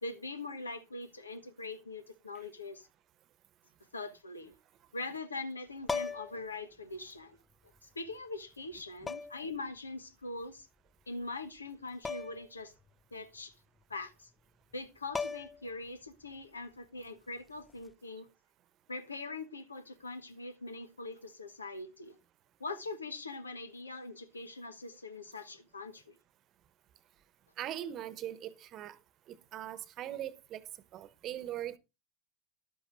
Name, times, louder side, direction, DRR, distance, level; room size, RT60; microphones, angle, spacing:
voice 1, 0.0-2.9 3.9-4.5 4.9-7.4 7.8-10.7 11.1-12.7 13.1-13.5 13.9-14.3 14.7-18.3 18.9-22.2 22.6-26.2, left 3 dB, 85° left, 1.1 m, -42 dB
sound 1, 5.8-6.4 7.8-7.9 9.1-9.5 12.0-12.5 12.8-12.9 14.7-14.8 15.1-15.7 17.7-17.9, left 4 dB, 15° left, 0.5 m, -37 dB
voice 2, 27.6-29.0 29.3-30.6 30.9-31.8, right 11 dB, 45° right, 1.0 m, -40 dB
13.0 x 12.0 x 2.5 m
figure-of-eight pair, 80°, 0 cm